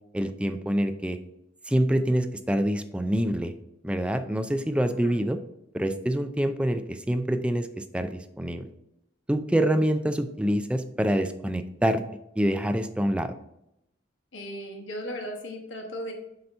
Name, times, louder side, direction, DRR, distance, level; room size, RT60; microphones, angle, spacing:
voice 1, 0.1-1.2 1.7-3.5 3.8-5.4 5.7-8.6 9.3-12.0 12.4-13.3, equal, 5° right, 8 dB, 0.4 m, -26 dB
voice 2, 4.8-5.2 14.3-16.1, equal, 80° left, 2 dB, 1.2 m, -37 dB
7.7 x 2.9 x 5.3 m, 0.82 s
head